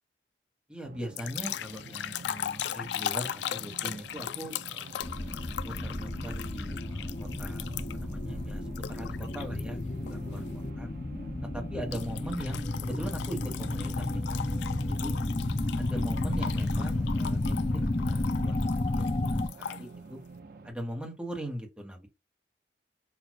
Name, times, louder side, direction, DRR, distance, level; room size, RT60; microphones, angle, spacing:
voice 1, 0.7-4.9 5.6-7.7 7.9-8.6 8.9-10.4 10.8-10.9 11.5-14.4 14.9-15.1 15.8-17.7 18.1-20.2 20.6-22.1, equal, 5° right, 1.2 m, -40 dB
sound 1, 0.8-20.7, right 3 dB, 55° right, 0.6 m, -47 dB
sound 2, 1.2-8.1 8.8-9.6 10.1-10.4 11.9-19.8, left 10 dB, 75° left, 0.3 m, -38 dB
sound 3, 5.0-19.5, left 2 dB, 35° left, 0.6 m, -32 dB
6.2 x 2.6 x 2.9 m
head